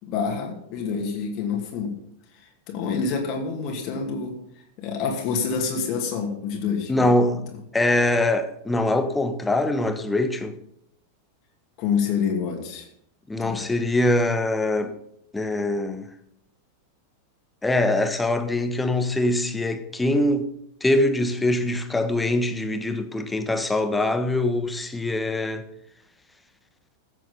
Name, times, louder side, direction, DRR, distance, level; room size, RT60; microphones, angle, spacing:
voice 1, 0.0-2.0 2.3-4.4 4.8-7.1 11.8-12.9 13.4-13.6, left 5 dB, 40° left, 2.5 m, -27 dB
voice 2, 6.9-7.4 7.7-10.5 13.3-14.9 15.3-16.1 17.6-20.5 20.8-25.6, left 1 dB, 10° left, 1.2 m, -23 dB
15.0 x 7.6 x 5.5 m
figure-of-eight pair, 90°, 0 cm